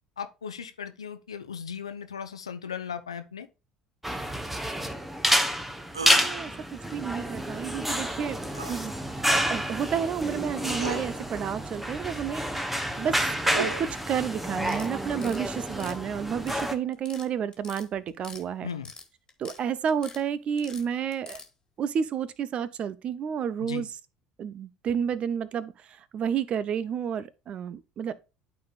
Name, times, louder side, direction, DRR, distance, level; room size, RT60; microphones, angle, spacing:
voice 1, 0.2-3.5 18.6-18.9 23.6-23.9, left 7 dB, 80° left, 0.7 m, -37 dB
sound 1, 4.0-16.7, equal, 5° right, 1.0 m, -29 dB
sound 2, 5.9-6.2 8.5-8.8 10.1-10.2 10.8-11.1 13.0-13.9, right 4 dB, 85° right, 0.3 m, -35 dB
voice 2, 6.0-8.4 8.7-8.9 9.3-12.4 13.0-13.2 13.5-18.7 19.4-21.4 21.8-23.9 24.4-25.7 26.1-28.1, right 8 dB, 40° right, 0.6 m, -30 dB
sound 3, 14.6-15.4 15.7-16.7 16.9-17.3 17.5-18.4 18.7-19.6 19.9-20.2 20.6-21.5, left 4 dB, 25° left, 1.9 m, -44 dB
12.5 x 4.2 x 2.5 m
figure-of-eight pair, 60°, 3 cm